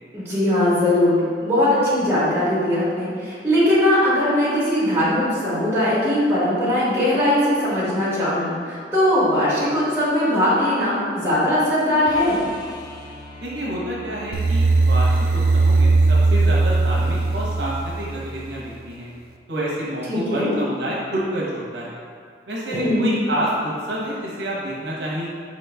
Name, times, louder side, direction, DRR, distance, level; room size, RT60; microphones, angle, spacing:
voice 1, 0.1-1.2 1.4-12.4 20.1-20.5 22.7-23.1, left 1 dB, 15° right, -10 dB, 1.4 m, -20 dB
sound 1, 12.0-18.0 20.5-20.6, left 1 dB, 25° left, 0.4 m, -41 dB
voice 2, 13.4-19.1 19.5-22.0 22.5-25.3, right 1 dB, 75° right, -6 dB, 0.9 m, -28 dB
sound 2, 14.3-18.4, right 3 dB, 55° right, 0.3 m, -18 dB
4.9 x 3.0 x 3.4 m, 2.1 s
head